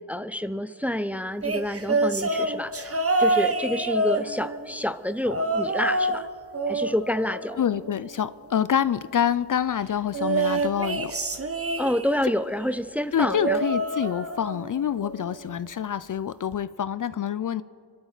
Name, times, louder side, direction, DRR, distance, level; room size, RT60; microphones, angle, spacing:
voice 1, 0.1-2.9 3.2-6.3 6.7-7.6 11.8-13.6, left 1 dB, 5° right, 12 dB, 0.5 m, -28 dB
sound 1, 1.4-4.7 5.3-6.3 6.5-8.1 10.1-12.3 13.2-14.7 15.0-15.4 16.5-16.6, right 2 dB, 35° right, 1.1 m, -27 dB
voice 2, 7.6-11.1 13.1-17.6, left 9 dB, 50° left, 15 dB, 0.4 m, -26 dB
27.0 x 12.5 x 4.0 m, 2.2 s
wide cardioid pair, 75°, 42 cm